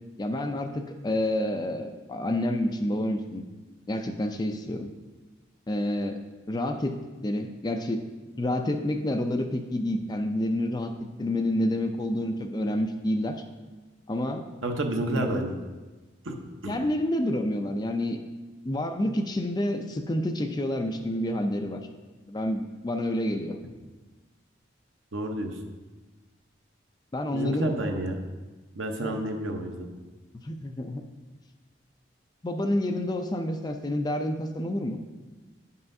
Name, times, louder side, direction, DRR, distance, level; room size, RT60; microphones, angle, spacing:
voice 1, 0.2-3.4 3.9-4.9 5.7-6.2 6.5-8.0 8.4-10.9 11.2-13.4 14.1-14.5 15.2-15.4 16.6-18.2 18.6-21.8 22.3-23.6 27.1-27.7 29.0-29.2 30.4-31.0 32.4-35.0, left 1 dB, 20° left, 5 dB, 0.4 m, -28 dB
voice 2, 14.6-15.5 16.2-16.4 16.6-16.8 25.1-25.6 27.3-28.2 28.7-29.9, right 1 dB, 80° right, 3 dB, 0.8 m, -30 dB
9.7 x 5.5 x 2.6 m, 1.2 s
head